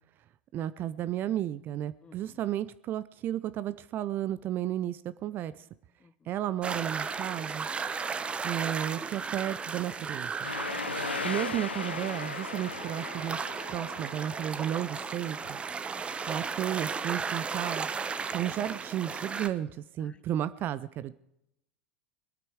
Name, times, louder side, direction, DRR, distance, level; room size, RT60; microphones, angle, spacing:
voice 1, 0.5-5.7 6.3-7.7 8.4-10.5 11.2-13.4 13.7-15.6 16.3-17.9 18.3-19.7 19.9-21.1, right 11 dB, 35° right, 15 dB, 0.5 m, -33 dB
voice 2, 2.0-2.4 6.0-6.1 15.9-16.3 20.0-20.2, left 5 dB, 20° left, 13 dB, 1.0 m, -58 dB
sound 1, 6.6-19.5, right 5 dB, 20° right, 0.9 m, -35 dB
sound 2, 10.4-15.6, left 4 dB, 80° left, 0.9 m, -38 dB
22.0 x 9.2 x 4.7 m, 0.82 s
figure-of-eight pair, 85°, 6 cm